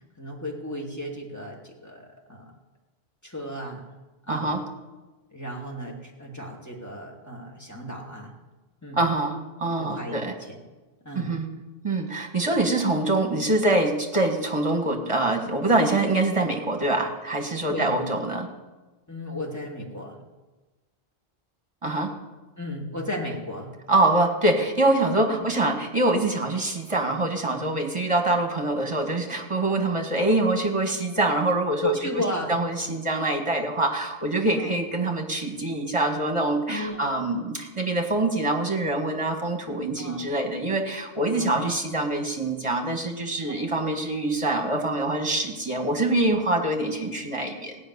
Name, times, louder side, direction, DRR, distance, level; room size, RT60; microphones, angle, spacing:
voice 1, 0.2-2.5 3.2-3.9 4.3-4.5 5.3-8.3 8.8-9.0 9.8-10.6 11.0-11.3 17.7-18.1 19.1-20.2 22.6-23.7 31.8-32.6 34.6-34.7 36.7-37.0 40.0-40.2 41.3-41.8 43.5-43.6, equal, 15° left, -1 dB, 2.6 m, -34 dB
voice 2, 4.3-4.6 8.9-10.3 11.1-11.5 11.8-18.5 21.8-22.1 23.9-32.0 32.5-47.8, right 2 dB, 25° right, 3 dB, 1.9 m, -25 dB
16.5 x 6.1 x 9.6 m, 1.2 s
omnidirectional pair, 1.1 m